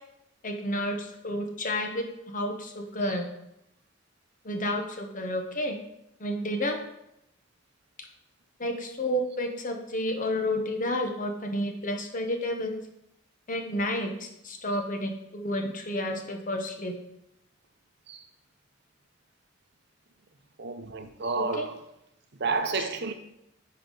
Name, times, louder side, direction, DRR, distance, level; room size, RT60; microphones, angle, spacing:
voice 1, 0.4-3.3 4.4-5.8 6.2-6.8 8.0-8.1 8.6-12.8 13.5-16.9 21.4-21.6 22.7-22.9, left 1 dB, 45° left, 1.0 m, -31 dB
voice 2, 20.6-21.8 22.4-23.1, right 4 dB, 60° right, 0.8 m, -30 dB
10.5 x 4.5 x 3.9 m
head